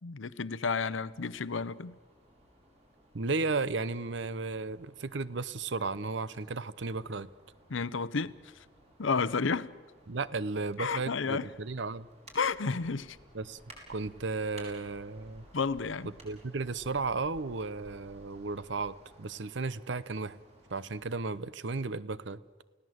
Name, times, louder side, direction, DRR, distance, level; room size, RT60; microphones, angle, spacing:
voice 1, 0.0-2.0 7.7-8.5 9.0-9.7 10.8-11.5 12.3-13.2 15.5-16.1, left 5 dB, 90° left, 0.7 m, -31 dB
sound 1, 1.1-21.0, right 1 dB, 35° right, 5.4 m, -57 dB
voice 2, 3.1-7.3 10.1-12.1 13.3-13.6 13.9-15.5 16.2-20.4 20.7-22.4, right 3 dB, 70° right, 0.7 m, -34 dB
29.5 x 16.5 x 7.9 m
head